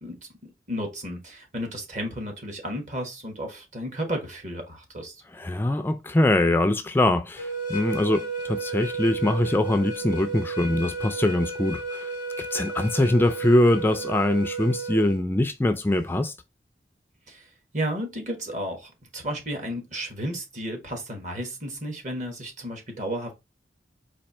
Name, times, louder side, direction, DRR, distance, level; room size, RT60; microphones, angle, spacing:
voice 1, 0.0-5.2 17.3-23.3, equal, 45° right, 1.4 m, -33 dB
voice 2, 5.3-12.1 12.4-16.3, left 1 dB, 10° left, 0.3 m, -23 dB
sound 1, 7.4-15.2, right 4 dB, 25° right, 1.3 m, -33 dB
4.4 x 2.7 x 4.2 m
head